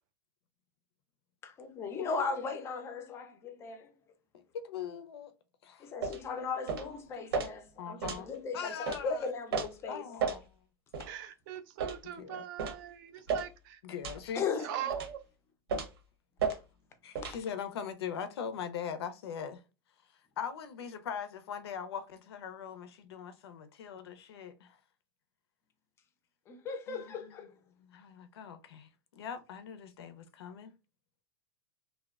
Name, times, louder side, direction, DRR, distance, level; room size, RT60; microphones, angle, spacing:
voice 1, 1.4-3.9 5.8-10.0 14.4-14.8 16.5-16.6 26.5-27.5, left 5 dB, 20° left, 0.3 m, -37 dB
voice 2, 4.3-5.3 5.6-5.9 7.8-8.3 8.5-9.3 9.9-10.5 12.0-12.4 13.8-14.4 17.0-19.6 20.4-24.8 26.9-27.5 27.8-30.7, left 7 dB, 90° left, 0.5 m, -41 dB
sound 1, 6.0-6.2 6.7-6.9 7.3-7.5 8.0-8.2 8.9-9.0 9.5-9.7 10.2-10.4 10.9-11.1 11.8-12.0 12.6-12.8 13.3-13.5 14.0-14.2 14.9-15.1 15.7-16.0 16.4-16.6 17.1-17.4, right 5 dB, 80° right, 0.7 m, -33 dB
voice 3, 11.1-13.8 14.6-15.2, right 11 dB, 50° right, 0.4 m, -41 dB
2.6 x 2.1 x 2.2 m
supercardioid pair, 145°, 13 cm